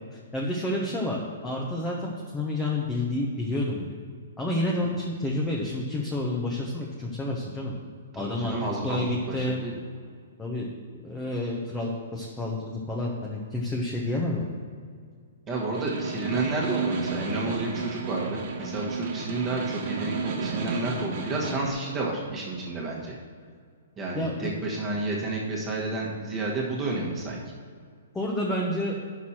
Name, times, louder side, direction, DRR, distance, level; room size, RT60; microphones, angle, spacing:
voice 1, 0.3-4.0 4.4-7.7 8.1-9.6 10.4-10.7 11.0-14.4 24.1-24.5 28.1-28.9, left 1 dB, 10° left, -3 dB, 0.8 m, -29 dB
voice 2, 8.1-9.7 15.5-23.1 24.0-27.4, right 2 dB, 15° right, -3 dB, 1.4 m, -31 dB
Snare drum, 15.6-21.7, right 4 dB, 45° right, 1.3 m, -32 dB
9.2 x 6.2 x 4.3 m, 2.1 s
hypercardioid pair, 160°, 0 cm